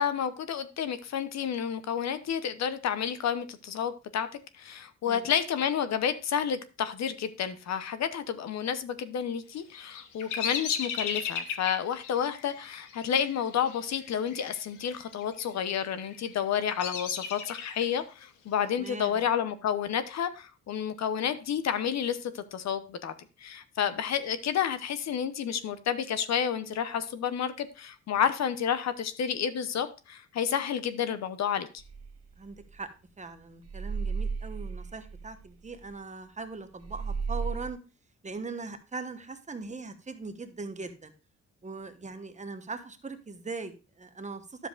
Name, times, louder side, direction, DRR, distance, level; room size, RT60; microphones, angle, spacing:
voice 1, 0.0-4.3 4.6-23.1 23.4-31.7, left 8 dB, 60° left, 12 dB, 0.8 m, -30 dB
Bird vocalization bird call bird song, 9.5-14.6 14.8-15.4 16.0-18.0, left 7 dB, 85° left, 1.2 m, -36 dB
voice 2, 18.7-19.2 32.4-32.9 33.2-37.8 38.2-41.1 41.6-44.7, right 3 dB, 25° right, 8 dB, 1.1 m, -40 dB
sound 1, 31.8-33.2 33.6-36.5 36.8-37.7, right 5 dB, 55° right, 1.7 m, -35 dB
10.5 x 7.2 x 2.4 m, 0.31 s
cardioid pair, 90°, 30 cm